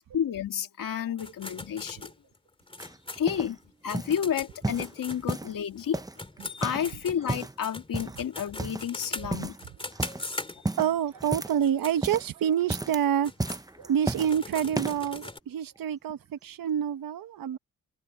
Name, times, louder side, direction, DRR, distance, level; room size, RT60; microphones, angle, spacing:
voice 1, 0.1-2.1 3.1-3.6 3.8-6.0 6.6-9.6, left 9 dB, 75° left, 2.7 m, -30 dB
sound 1, 1.2-5.9 6.2-10.9 11.5-12.0 12.4-12.5 13.0-15.4, left 2 dB, 15° left, 3.3 m, -41 dB
sound 2, 2.8-3.5 3.9-4.2 4.6-5.6 5.9-6.9 7.2-7.6 7.9-8.2 8.6-9.0 9.3-9.6 9.9-10.2 10.6-11.7 11.9-12.3 12.6-13.0 13.4-14.3 14.7-15.1 15.8-15.9, right 2 dB, 10° right, 0.8 m, -33 dB
voice 2, 10.8-13.3 13.8-17.6, right 9 dB, 90° right, 1.5 m, -27 dB
cardioid pair, 95°, 33 cm